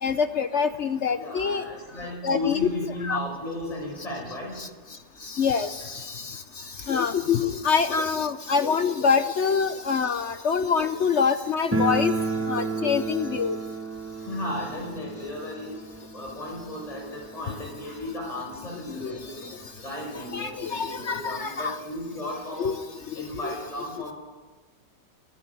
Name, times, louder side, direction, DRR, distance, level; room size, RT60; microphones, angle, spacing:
voice 1, 0.0-1.6 2.2-2.7 3.0-3.2 4.6-4.7 5.3-6.3 6.9-12.1 12.5-13.6 19.0-19.2 20.3-21.8 22.6-22.8 23.4-23.6, left 6 dB, 55° left, 11 dB, 0.8 m, -25 dB
voice 2, 1.2-4.6 6.8-6.9 14.2-22.8 23.1-24.1, left 1 dB, 20° left, -2 dB, 5.9 m, -35 dB
sound 1, 11.7-18.4 18.7-18.8 19.0-19.1 19.9-20.0 20.3-21.5, right 3 dB, 10° right, 1.0 m, -32 dB
25.5 x 11.0 x 9.9 m, 1.3 s
omnidirectional pair, 1.9 m